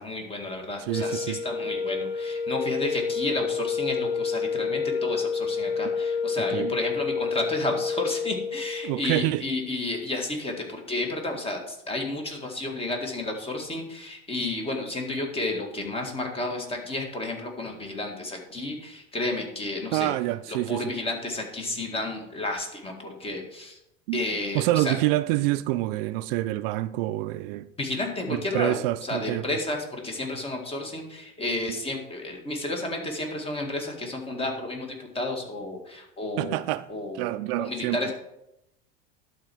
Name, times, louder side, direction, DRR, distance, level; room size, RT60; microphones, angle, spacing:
voice 1, 0.0-20.1 20.5-23.8 24.1-24.9 27.8-36.6 36.9-37.3 37.6-38.1, left 2 dB, 20° left, 1.9 m, -31 dB
sound 1, 0.8-9.0, left 5 dB, 80° left, 1.5 m, -29 dB
voice 2, 0.9-1.4 6.5-6.7 8.8-9.4 19.9-20.9 24.1-24.2 24.5-27.7 28.3-29.4 36.4-36.9 37.1-38.0, right 17 dB, 70° right, 0.5 m, -27 dB
11.5 x 4.4 x 6.1 m
supercardioid pair, 115°, 30 cm